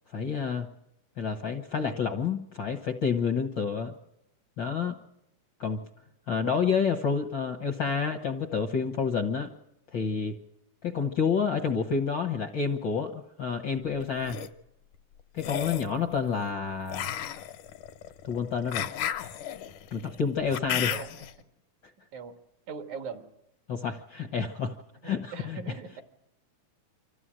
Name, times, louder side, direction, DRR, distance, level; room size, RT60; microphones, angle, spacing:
voice 1, 0.1-0.7 1.2-3.9 4.6-4.9 5.6-5.8 6.3-9.5 9.9-10.4 10.8-14.4 15.3-17.1 18.2-18.9 19.9-20.9 23.7-24.7 25.0-25.6, left 6 dB, 60° left, 5 dB, 1.2 m, -29 dB
sound 1, 14.0-14.5 15.4-15.9 16.9-21.3, left 10 dB, 80° left, 2.5 m, -34 dB
voice 2, 16.2-16.6 20.9-21.3 22.1-22.3 22.7-23.3 25.0-26.0, right 5 dB, 75° right, 7 dB, 2.9 m, -41 dB
25.5 x 14.5 x 8.9 m, 0.85 s
omnidirectional pair, 3.5 m